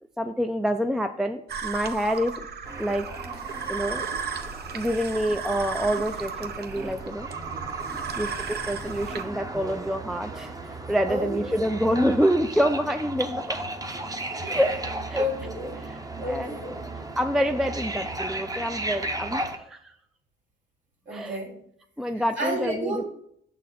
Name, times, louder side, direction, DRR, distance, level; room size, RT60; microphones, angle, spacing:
voice 1, 0.2-2.5 2.8-3.0 3.7-4.0 4.7-7.3 8.2-10.5 10.9-13.6 14.5-14.7 15.1-15.2 16.3-16.6 17.2-19.9 21.1-21.4 22.0-23.0, equal, ahead, 7 dB, 0.3 m, -26 dB
sound 1, 1.5-9.2, right 6 dB, 55° right, 0.7 m, -34 dB
sound 2, 2.6-19.6, right 2 dB, 20° right, 0.8 m, -36 dB
voice 2, 11.1-11.5 14.4-14.7 15.1-15.9 16.2-16.7 21.1-21.6 22.1-23.0, equal, 70° right, -1 dB, 2.5 m, -31 dB
6.4 x 4.0 x 5.7 m, 0.70 s
cardioid pair, 90°, 20 cm